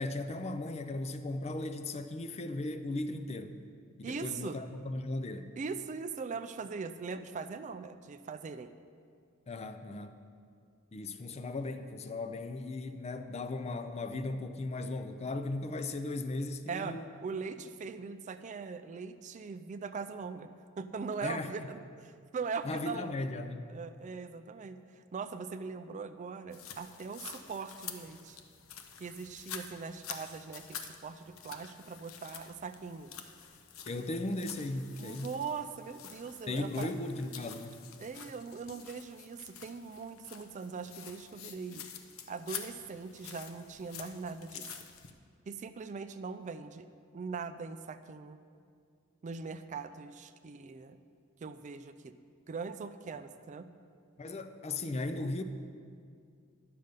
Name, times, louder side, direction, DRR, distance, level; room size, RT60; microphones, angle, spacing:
voice 1, 0.0-3.6 4.0-5.5 9.5-10.2 10.9-17.1 21.2-21.5 22.6-23.7 33.9-35.3 36.5-37.8 54.2-55.4, left 2 dB, 30° left, 9 dB, 0.4 m, -37 dB
voice 2, 4.0-4.6 5.6-8.7 16.7-23.1 23.7-28.4 29.0-33.1 35.0-36.9 38.0-41.9 42.3-44.7 45.5-46.9 47.1-48.4 49.2-51.0 51.4-52.1 52.5-53.7, right 5 dB, 35° right, 10 dB, 0.3 m, -41 dB
sound 1, 26.5-45.1, left 8 dB, 75° left, 0.7 m, -48 dB
10.5 x 6.7 x 5.2 m, 2.3 s
head